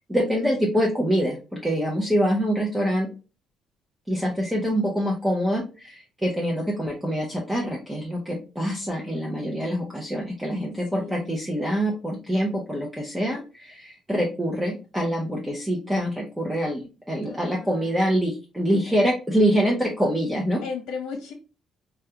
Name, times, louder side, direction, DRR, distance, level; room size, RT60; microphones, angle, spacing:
voice 1, 0.1-3.1 4.1-20.6, equal, 10° right, -2 dB, 0.6 m, -25 dB
voice 2, 10.9-11.4 17.2-18.1 20.6-21.3, left 5 dB, 85° left, 1 dB, 0.7 m, -36 dB
3.5 x 2.3 x 2.7 m, 0.32 s
cardioid pair, 120°, 0 cm